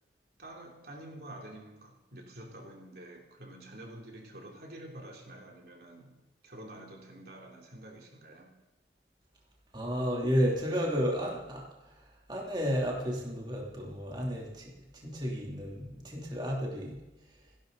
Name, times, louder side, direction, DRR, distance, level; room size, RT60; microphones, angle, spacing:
voice 1, 0.4-6.1 6.4-8.6, right 1 dB, 60° right, 0 dB, 3.1 m, -48 dB
voice 2, 9.7-17.0, equal, 25° right, -2 dB, 3.1 m, -32 dB
28.0 x 12.0 x 4.0 m, 0.99 s
head